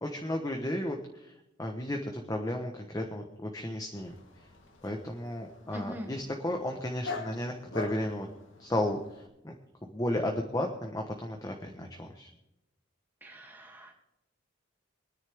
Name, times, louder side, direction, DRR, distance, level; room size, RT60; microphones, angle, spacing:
voice 1, 0.0-1.3 1.6-4.1 4.8-8.3 8.6-9.5 9.9-12.3, left 1 dB, 20° left, 2 dB, 1.1 m, -34 dB
Dog, 3.9-9.3, left 3 dB, 70° left, 2.1 m, -44 dB
voice 2, 5.7-6.1 13.2-14.0, equal, 10° right, 0 dB, 2.5 m, -42 dB
24.5 x 10.0 x 3.6 m, 0.89 s
head